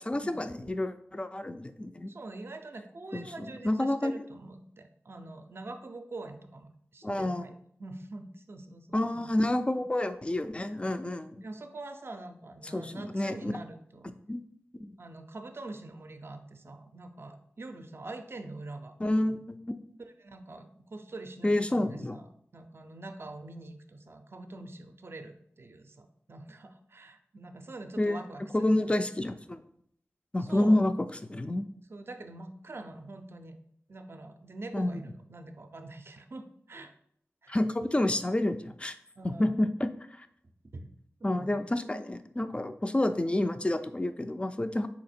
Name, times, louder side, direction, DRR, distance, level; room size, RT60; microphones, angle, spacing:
voice 1, 0.0-2.1 3.1-4.1 7.0-7.5 8.9-11.4 12.7-13.5 14.3-14.4 14.7-14.9 19.0-19.7 21.4-22.2 28.0-28.2 28.5-29.6 30.3-30.9 31.3-31.6 34.7-35.0 37.5-39.0 39.2-39.9 40.2-40.3 41.2-44.9, left 1 dB, 25° left, 9 dB, 0.4 m, -29 dB
voice 2, 2.1-9.0 11.4-14.1 15.0-18.9 20.2-28.8 30.4-30.9 31.9-33.6 33.9-36.9 37.4-37.6 39.2-39.6 40.6-40.9 41.2-41.6, right 2 dB, 50° right, 7 dB, 0.5 m, -44 dB
4.1 x 2.9 x 4.3 m, 0.68 s
cardioid pair, 50°, 5 cm